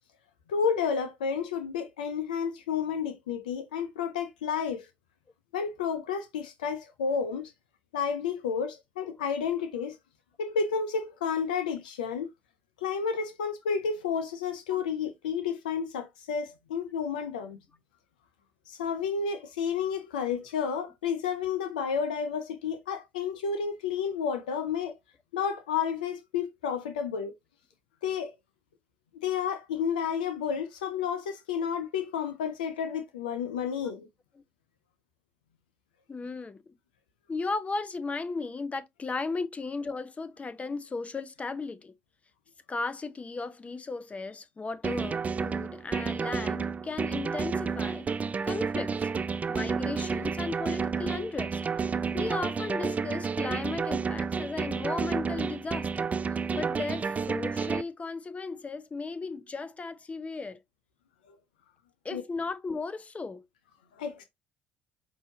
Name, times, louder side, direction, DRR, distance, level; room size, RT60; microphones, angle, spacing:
voice 1, 0.5-4.9 5.5-7.5 7.9-10.0 10.4-12.3 12.8-17.6 18.7-24.9 25.3-27.3 28.0-28.3 29.2-34.1 61.3-61.4 62.1-62.2 64.0-64.2, left 6 dB, 90° left, 0.5 m, -31 dB
voice 2, 36.1-36.6 37.3-41.9 42.7-48.1 48.4-49.1 49.5-60.6 62.0-63.4, left 3 dB, 30° left, 0.8 m, -36 dB
sound 1, 44.8-57.8, right 5 dB, 30° right, 0.4 m, -31 dB
5.4 x 2.7 x 2.7 m
hypercardioid pair, 55°, 5 cm